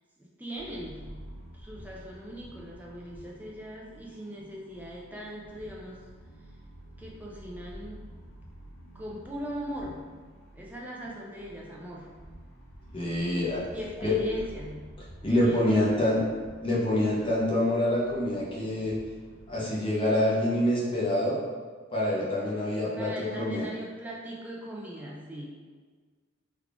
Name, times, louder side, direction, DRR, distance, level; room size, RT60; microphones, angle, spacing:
voice 1, 0.2-6.1 7.0-8.1 8.9-10.1 10.5-12.1 13.7-14.9 15.2-16.0 23.0-25.5, equal, 10° right, -4 dB, 0.4 m, -40 dB
sound 1, 0.6-19.5, right 1 dB, 55° left, 1.3 m, -49 dB
voice 2, 12.9-13.7 14.0-14.2 15.2-16.2 16.6-19.0 19.5-21.4 21.9-23.7, left 1 dB, 25° left, -6 dB, 0.7 m, -26 dB
3.4 x 2.3 x 3.6 m, 1.5 s
head